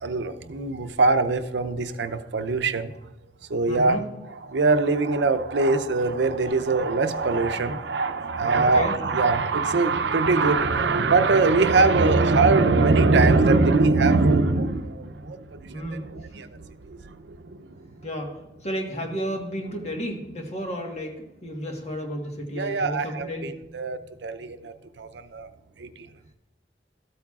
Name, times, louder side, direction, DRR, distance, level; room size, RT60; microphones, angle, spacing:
voice 1, 0.0-2.9 3.5-4.0 4.5-17.6 22.5-25.5 25.8-26.1, right 3 dB, 80° right, 0.6 m, -22 dB
voice 2, 3.7-4.1 8.5-9.0 15.7-16.1 18.0-18.3 18.6-23.6, equal, 35° left, 1.3 m, -32 dB
13.0 x 8.6 x 2.4 m
head